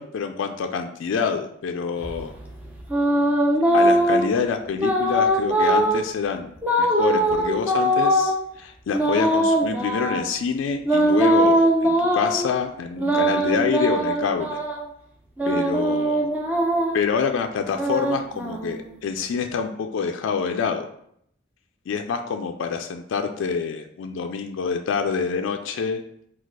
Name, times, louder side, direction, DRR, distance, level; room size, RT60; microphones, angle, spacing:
voice 1, 0.0-2.3 3.7-14.6 15.5-16.4 16.9-20.9 21.9-26.0, left 6 dB, 70° left, 5 dB, 0.3 m, -27 dB
sound 1, 2.0-4.3 4.8-6.0 6.6-8.3 8.9-10.3 10.9-12.4 13.0-14.8 15.4-17.0 17.6-19.0, right 1 dB, 10° right, 0.6 m, -21 dB
4.0 x 2.3 x 4.6 m, 0.71 s
head